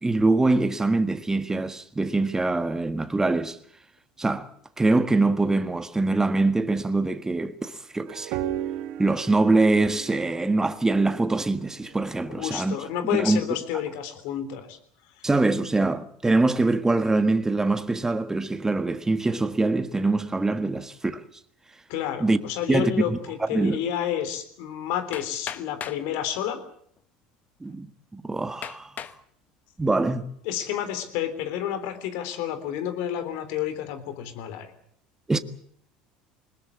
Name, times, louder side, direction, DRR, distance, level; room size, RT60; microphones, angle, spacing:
voice 1, 0.0-3.6 4.2-4.5 4.8-8.4 9.0-12.7 13.1-13.4 15.2-21.2 22.2-22.4 22.7-23.8 27.6-27.9 28.1-28.9 29.8-30.3 35.3-35.4, right 2 dB, 15° right, 1.6 m, -23 dB
sound 1, 8.1-13.0, right 12 dB, 65° right, 1.5 m, -36 dB
voice 2, 12.3-14.8 15.2-15.3 21.9-26.6 30.5-34.7, left 10 dB, 70° left, 3.5 m, -30 dB
Hammer, 25.1-26.1 27.0-27.1 27.7-27.8 28.6-29.2 29.8-30.2, left 9 dB, 45° left, 1.3 m, -37 dB
21.5 x 20.5 x 8.4 m
hypercardioid pair, 80°, 4 cm